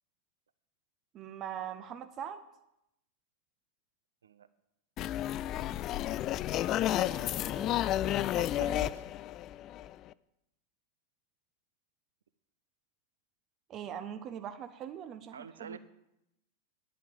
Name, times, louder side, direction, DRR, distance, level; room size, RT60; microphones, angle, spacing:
voice 1, 1.1-2.4 6.5-8.9 13.7-15.8, right 9 dB, 30° right, 10 dB, 0.7 m, -43 dB
sound 1, 5.0-10.1, left 13 dB, 35° left, 0.3 m, -31 dB
voice 2, 15.3-15.8, right 6 dB, 70° right, 14 dB, 0.6 m, -47 dB
10.5 x 7.7 x 7.7 m, 0.85 s
figure-of-eight pair, 90°, 0 cm